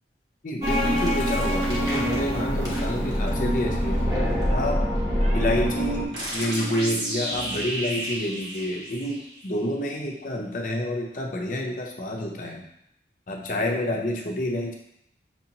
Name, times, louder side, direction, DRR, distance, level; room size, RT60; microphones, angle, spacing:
voice 1, 0.4-4.0 4.5-4.8 5.3-12.6 13.3-14.7, left 1 dB, 45° left, 1 dB, 0.6 m, -29 dB
sound 1, 0.6-6.0, equal, 20° right, 0.9 m, -24 dB
sound 2, 3.7-4.2 5.2-5.5 6.1-7.7 7.9-8.5, right 1 dB, 40° right, 0.5 m, -40 dB
sound 3, 6.1-9.6, right 1 dB, 80° right, 1.4 m, -32 dB
5.9 x 2.8 x 2.8 m, 0.76 s
head